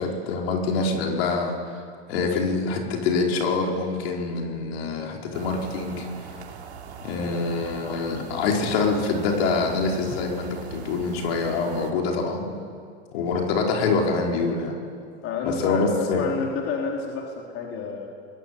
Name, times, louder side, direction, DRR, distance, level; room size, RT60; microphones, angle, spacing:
voice 1, 0.0-1.6 2.1-6.1 7.0-12.5 13.1-14.8 15.4-16.2, left 4 dB, 65° left, 1 dB, 4.9 m, -25 dB
sound 1, 5.3-11.9, right 7 dB, 90° right, 3.7 m, -41 dB
voice 2, 15.2-18.1, left 5 dB, 40° left, 0 dB, 3.9 m, -30 dB
29.5 x 22.0 x 8.6 m, 2.3 s
hypercardioid pair, 120°, 33 cm